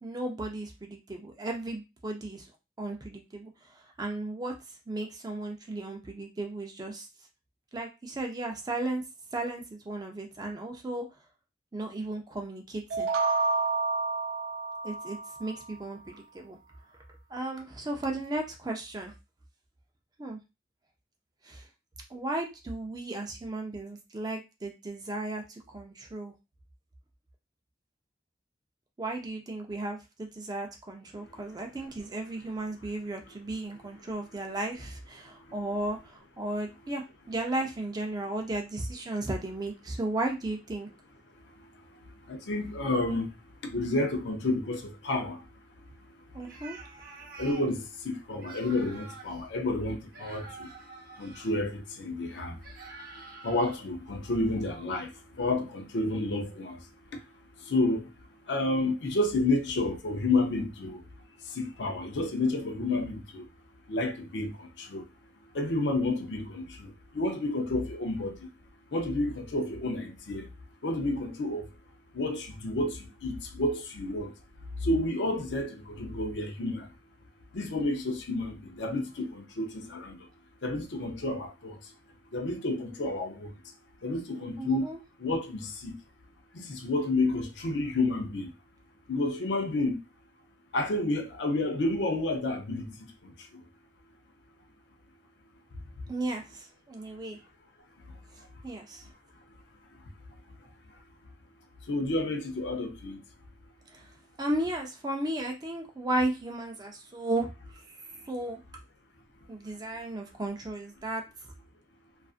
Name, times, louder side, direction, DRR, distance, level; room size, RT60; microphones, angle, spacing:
voice 1, 0.0-2.5 2.8-4.5 4.9-7.1 7.7-9.0 9.3-11.1 11.7-13.1 14.8-16.6 17.3-19.1 20.2-20.4 21.4-21.7 22.1-26.3 29.0-40.9 46.3-46.8 84.6-85.0 96.1-97.4 98.6-99.1 103.9-104.1 104.4-107.5 107.9-108.6 109.5-111.2, right 2 dB, 20° right, 0.4 m, -35 dB
sound 1, 12.9-15.7, right 3 dB, 80° right, 0.4 m, -29 dB
voice 2, 42.3-43.3 43.7-45.4 47.4-50.7 51.2-52.6 53.4-55.1 55.4-56.8 57.7-58.1 58.5-61.0 61.6-63.4 63.9-64.5 64.8-65.0 65.5-68.4 68.9-70.4 70.8-71.7 72.1-74.3 74.8-76.9 77.5-80.2 80.6-81.8 82.3-83.5 84.0-84.9 85.2-85.9 86.5-88.5 89.1-90.0 90.7-92.9 101.9-103.2, left 2 dB, 70° left, 0.5 m, -30 dB
sound 2, 46.4-47.7 48.4-49.4 50.1-51.5 52.6-53.8, right 3 dB, 55° right, 0.7 m, -47 dB
2.4 x 2.4 x 2.4 m
head